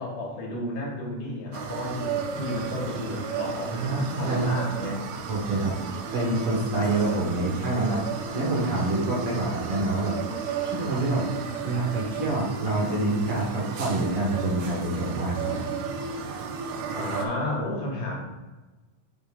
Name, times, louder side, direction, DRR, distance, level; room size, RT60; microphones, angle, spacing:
voice 1, 0.0-5.0 16.9-18.2, left 1 dB, 80° left, -2 dB, 2.9 m, -32 dB
sound 1, 1.5-17.3, right 6 dB, 75° right, 1.7 m, -34 dB
voice 2, 3.7-4.6 5.3-5.8 6.1-10.2 10.6-11.3 11.6-15.7, right 2 dB, 55° right, -5 dB, 1.8 m, -27 dB
7.8 x 5.8 x 2.4 m, 1.2 s
omnidirectional pair, 3.7 m